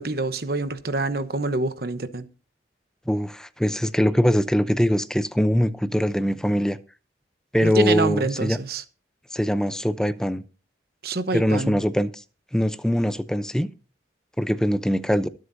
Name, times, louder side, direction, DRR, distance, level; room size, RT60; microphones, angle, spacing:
voice 1, 0.0-2.2 7.6-8.8 11.0-11.8, right 2 dB, 55° right, 1.0 m, -26 dB
voice 2, 3.1-6.8 7.5-8.6 9.3-10.4 11.3-12.2 12.5-13.7 14.4-15.3, equal, 5° left, 0.7 m, -22 dB
23.0 x 8.0 x 2.7 m
head